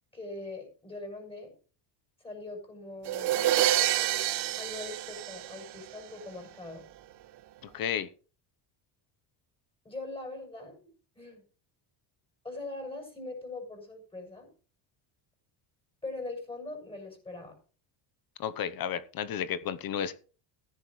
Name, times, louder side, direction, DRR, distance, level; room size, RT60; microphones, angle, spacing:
voice 1, 0.1-1.5 2.2-3.3 4.6-6.8 9.8-10.9 11.1-11.4 12.4-14.5 16.0-17.6, left 2 dB, 10° left, 2 dB, 6.4 m, -41 dB
sound 1, 3.1-6.0, right 13 dB, 55° right, 1.0 m, -28 dB
voice 2, 7.6-8.1 18.4-20.1, left 9 dB, 50° left, 13 dB, 1.0 m, -32 dB
14.5 x 10.5 x 3.2 m, 0.38 s
cardioid pair, 120°, 47 cm